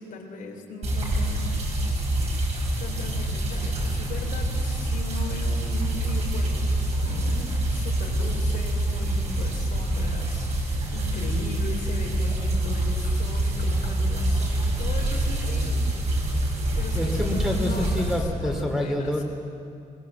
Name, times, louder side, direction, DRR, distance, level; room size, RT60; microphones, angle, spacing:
voice 1, 0.0-1.6 2.8-15.9 16.7-19.1, left 3 dB, 85° left, 0 dB, 4.0 m, -38 dB
sound 1, 0.8-18.1, right 1 dB, 50° right, 5.6 m, -26 dB
voice 2, 16.9-19.2, left 1 dB, 5° right, 2 dB, 2.6 m, -27 dB
21.5 x 21.0 x 7.7 m, 2.5 s
cardioid pair, 150°, 14 cm